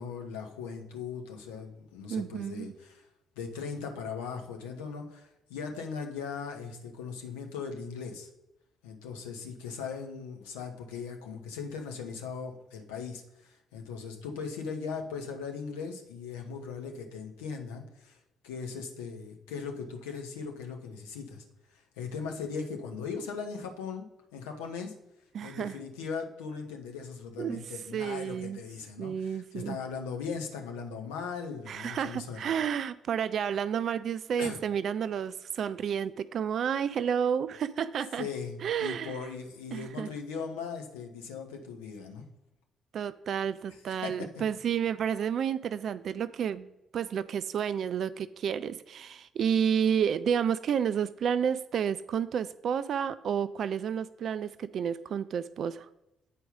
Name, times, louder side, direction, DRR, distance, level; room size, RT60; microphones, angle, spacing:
voice 1, 0.0-3.0 3.4-8.3 8.8-18.2 18.4-21.4 21.7-24.0 24.3-24.9 25.4-32.4 34.4-34.6 38.2-42.2 43.7-44.3, left 5 dB, 75° left, 3 dB, 1.0 m, -39 dB
voice 2, 2.1-2.7 25.3-25.7 27.4-27.6 27.9-28.6 29.0-29.8 31.7-38.3 38.6-39.2 39.7-40.1 42.9-46.7 46.9-55.9, right 8 dB, 55° right, 14 dB, 0.3 m, -30 dB
8.4 x 4.6 x 5.1 m, 0.91 s
figure-of-eight pair, 40°, 0 cm